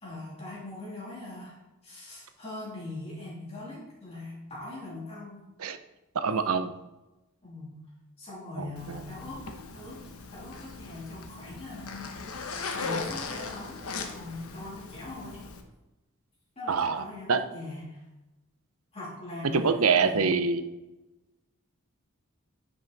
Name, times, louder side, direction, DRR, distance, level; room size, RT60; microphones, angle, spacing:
voice 1, 0.0-1.6 1.8-5.4 7.4-7.7 8.2-15.4 16.6-18.0 18.9-20.3, left 2 dB, 25° left, -6 dB, 3.1 m, -41 dB
voice 2, 6.2-6.7 8.6-8.7 16.7-17.0 17.3-17.4 19.6-20.6, right 5 dB, 80° right, 10 dB, 0.7 m, -24 dB
Zipper (clothing), 8.8-15.6, left 4 dB, 80° left, 1.0 m, -39 dB
10.5 x 6.2 x 4.0 m, 1.0 s
head